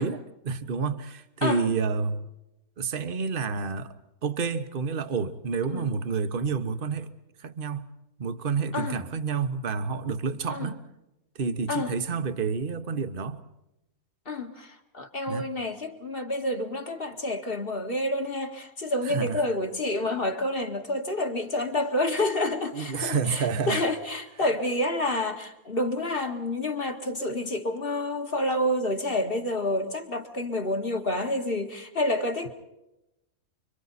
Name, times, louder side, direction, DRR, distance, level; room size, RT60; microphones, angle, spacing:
voice 1, 0.0-2.2 2.8-3.9 4.2-7.1 7.4-7.9 8.2-10.8 11.4-13.4 15.3-15.5 19.0-19.4 22.7-23.8, right 5 dB, 40° right, 1.2 m, -29 dB
voice 2, 14.3-32.5, left 1 dB, 40° left, 2.1 m, -29 dB
30.0 x 24.0 x 4.2 m
omnidirectional pair, 1.5 m